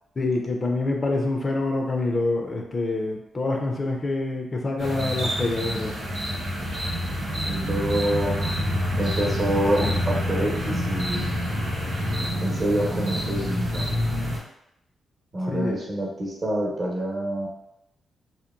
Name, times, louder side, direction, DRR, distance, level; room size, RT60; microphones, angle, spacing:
voice 1, 0.2-5.9 15.5-15.8, left 2 dB, 35° left, 2 dB, 0.4 m, -26 dB
sound 1, 4.8-14.4, equal, 75° right, 0.9 m, -27 dB
voice 2, 7.3-8.3 9.0-11.4 12.4-13.9 15.3-17.5, right 1 dB, 40° right, -3 dB, 0.8 m, -27 dB
2.8 x 2.1 x 2.3 m, 0.81 s
cardioid pair, 80°, 0 cm